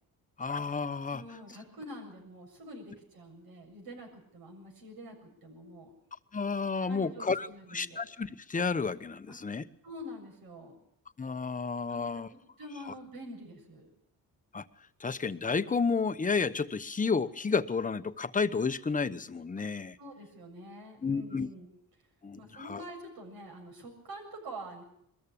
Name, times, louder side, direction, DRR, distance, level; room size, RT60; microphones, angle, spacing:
voice 1, 0.4-1.2 6.3-9.6 11.2-12.3 12.9-13.0 14.5-14.6 15.0-20.0 21.0-21.5 22.2-22.8, left 5 dB, 20° left, 11 dB, 1.0 m, -31 dB
voice 2, 1.1-5.9 6.9-8.0 9.3-9.4 9.8-10.8 11.9-13.9 19.6-19.7 20.0-21.7 22.4-24.8, equal, 80° right, 2 dB, 7.2 m, -46 dB
21.5 x 14.0 x 8.7 m, 0.72 s
cardioid pair, 95°, 36 cm